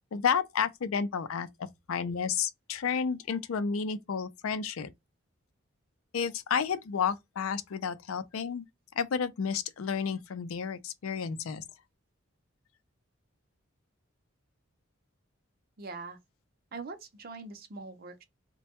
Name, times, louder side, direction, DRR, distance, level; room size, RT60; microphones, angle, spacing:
voice 1, 0.1-1.5 1.9-4.9 6.1-8.6 9.0-11.6, left 6 dB, 90° left, 0.4 m, -31 dB
voice 2, 15.8-16.2 16.7-18.2, right 3 dB, 45° right, 0.5 m, -42 dB
2.2 x 2.0 x 2.8 m
head